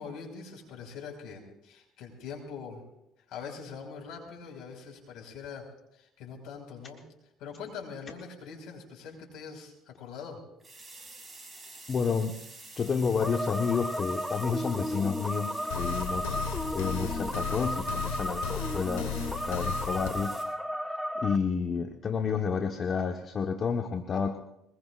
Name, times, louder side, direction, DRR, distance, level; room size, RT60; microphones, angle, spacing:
voice 1, 0.0-2.8 3.3-5.7 5.9-7.0 7.4-10.4, left 6 dB, 70° left, 2 dB, 5.5 m, -43 dB
sound 1, 10.6-20.4, right 2 dB, 20° right, 7.1 m, -48 dB
voice 2, 11.9-12.4 12.8-16.4 16.7-20.5 20.8-24.4, left 5 dB, 40° left, 5 dB, 1.3 m, -30 dB
sound 2, 13.2-21.4, equal, 5° left, 1.1 m, -34 dB
sound 3, 15.7-20.1, left 7 dB, 85° left, 1.6 m, -35 dB
23.0 x 20.5 x 2.5 m, 0.82 s
hypercardioid pair, 65°, 0 cm